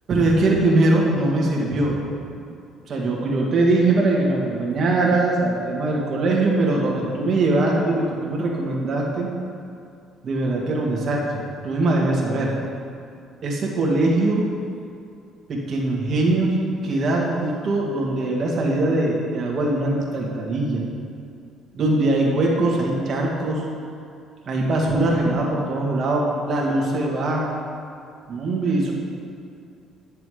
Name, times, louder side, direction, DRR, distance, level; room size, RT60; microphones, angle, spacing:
voice 1, 0.1-2.0 2.4-2.5 2.9-9.3 10.2-12.5 13.4-14.4 15.5-16.6 16.8-20.8 21.7-23.6 24.5-27.5 28.3-28.9, right 2 dB, 45° right, -2 dB, 2.0 m, -21 dB
9.7 x 6.8 x 5.1 m, 2.4 s
cardioid pair, 110°, 0 cm